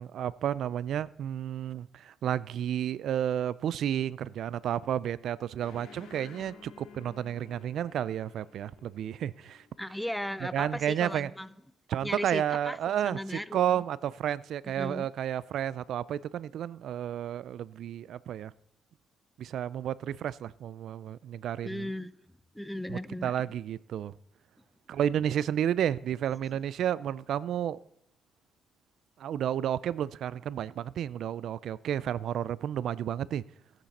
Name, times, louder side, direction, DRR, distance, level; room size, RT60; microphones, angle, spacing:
voice 1, 0.0-9.6 10.5-11.3 11.9-18.5 19.4-21.9 22.9-24.1 24.9-27.8 29.2-33.4, right 10 dB, 70° right, 0.4 m, -31 dB
sound 1, 5.6-10.6, left 6 dB, 85° left, 2.1 m, -54 dB
voice 2, 9.8-11.5 12.0-13.8 14.6-15.1 21.6-22.1 22.5-23.4, left 1 dB, 5° left, 0.6 m, -37 dB
16.0 x 9.0 x 4.2 m
cardioid pair, 90°, 0 cm